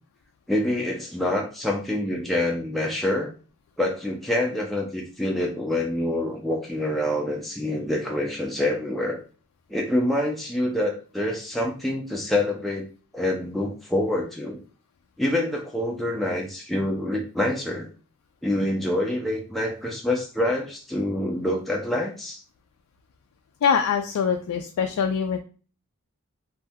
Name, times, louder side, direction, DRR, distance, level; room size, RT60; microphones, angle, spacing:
voice 1, 0.5-3.3 3.8-9.2 9.7-12.9 13.1-14.6 15.2-17.9 18.4-22.4, left 1 dB, ahead, -1 dB, 0.3 m, -26 dB
voice 2, 23.6-25.4, left 6 dB, 85° left, 4 dB, 0.3 m, -23 dB
2.6 x 2.1 x 3.4 m, 0.38 s
head